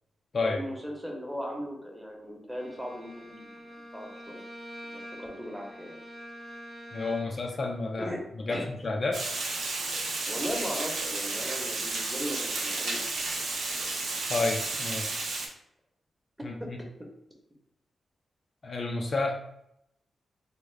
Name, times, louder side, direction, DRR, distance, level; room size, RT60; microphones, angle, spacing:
voice 1, 0.4-4.4 4.9-6.0 7.2-7.6 8.0-8.2 8.5-8.7 10.3-13.1 16.6-16.7 17.0-17.1, equal, 5° right, 0 dB, 0.8 m, -38 dB
Bowed string instrument, 2.5-7.5, equal, 40° right, 0.6 m, -45 dB
voice 2, 6.9-8.1 8.5-9.2 14.3-15.2 16.4-16.5 18.6-19.4, left 3 dB, 45° left, 2 dB, 0.4 m, -30 dB
Water, 9.1-15.5, right 3 dB, 80° right, 0.7 m, -32 dB
3.5 x 2.1 x 3.2 m, 0.79 s
cardioid pair, 90°, 0 cm